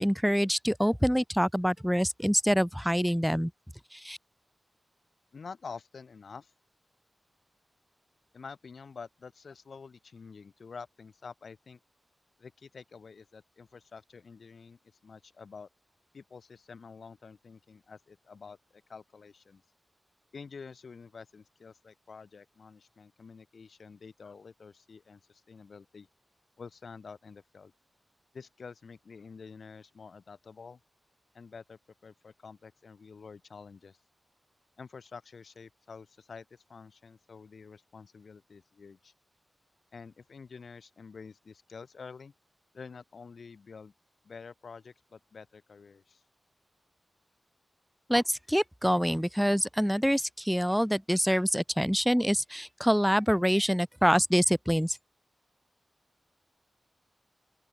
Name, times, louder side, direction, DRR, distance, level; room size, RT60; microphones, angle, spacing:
voice 1, 0.0-3.5 3.9-4.2 48.1-55.0, equal, ahead, 0.5 m, -26 dB
voice 2, 5.3-6.5 8.3-11.8 12.4-15.7 16.1-19.6 20.3-26.1 26.6-27.7 28.3-30.8 31.3-34.0 34.8-39.1 39.9-42.3 42.7-43.9 44.2-46.2, left 5 dB, 70° left, 2.5 m, -48 dB
open air
wide cardioid pair, 75°, 0 cm